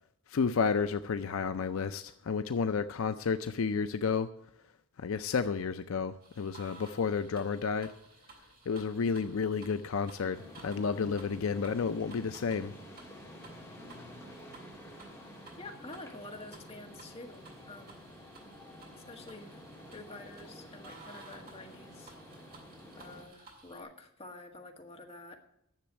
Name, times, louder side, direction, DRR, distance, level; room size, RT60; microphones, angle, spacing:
voice 1, 0.3-4.3 5.0-7.9 8.7-12.7, left 5 dB, 70° left, 0.5 m, -31 dB
sound 1, 6.2-23.8, right 3 dB, 45° right, 3.2 m, -56 dB
sound 2, 10.3-23.2, equal, 10° left, 3.0 m, -50 dB
voice 2, 15.6-18.0 18.9-19.6 19.9-22.1 22.4-22.6 22.9-25.4, left 2 dB, 30° left, 1.7 m, -48 dB
10.5 x 7.0 x 9.4 m
head